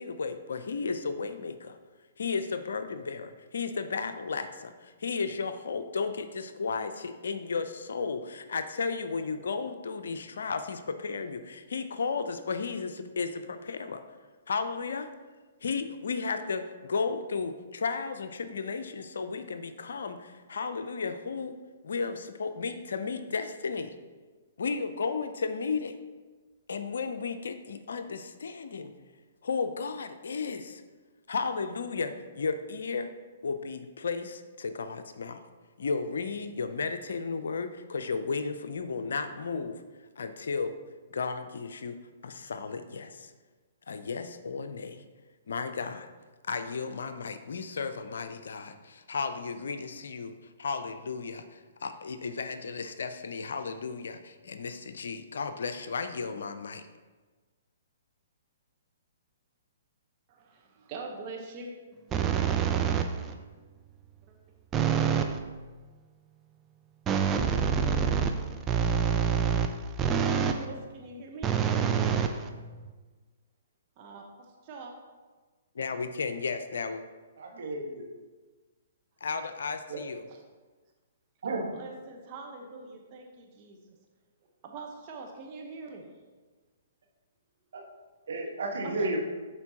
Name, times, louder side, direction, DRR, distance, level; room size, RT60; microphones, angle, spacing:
voice 1, 0.0-1.8 2.2-14.0 14.5-15.1 15.6-21.5 21.8-23.9 24.6-25.9 26.7-28.9 29.4-30.8 31.3-33.1 33.4-35.4 35.8-39.8 40.2-40.7 41.1-42.0 42.2-43.3 43.9-45.0 45.5-46.1 46.4-50.3 50.6-56.9 75.8-77.0 79.2-80.2, left 4 dB, 70° left, 9 dB, 0.5 m, -34 dB
voice 2, 60.3-61.7 64.3-64.4 67.5-68.5 70.4-71.6 74.0-74.3 74.7-74.9 80.3-80.4 81.7-83.8 84.6-86.1 88.8-89.1, right 3 dB, 35° right, 1 dB, 1.0 m, -43 dB
sound 1, 62.1-63.3 64.7-65.4 67.1-70.7 71.4-72.9, right 7 dB, 20° right, 0.5 m, -26 dB
voice 3, 77.4-78.0 79.9-80.0 81.4-81.7 87.7-87.8 88.3-89.3, right 2 dB, 65° right, 0 dB, 1.4 m, -32 dB
11.0 x 4.4 x 2.9 m, 1.3 s
figure-of-eight pair, 125°, 0 cm